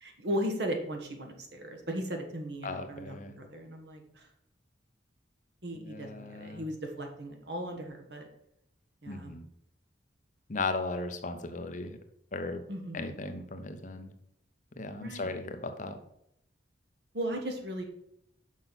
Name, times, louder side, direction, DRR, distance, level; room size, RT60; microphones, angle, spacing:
voice 1, 0.0-4.3 5.6-8.3 9.0-9.3 12.7-13.2 15.0-15.4 17.1-17.8, equal, 60° right, 3 dB, 1.4 m, -37 dB
voice 2, 2.6-3.3 5.7-6.6 9.1-9.5 10.5-12.0 12.3-12.6 12.9-14.1 14.8-16.0, left 3 dB, 40° left, 8 dB, 0.7 m, -36 dB
6.4 x 5.4 x 5.8 m, 0.76 s
head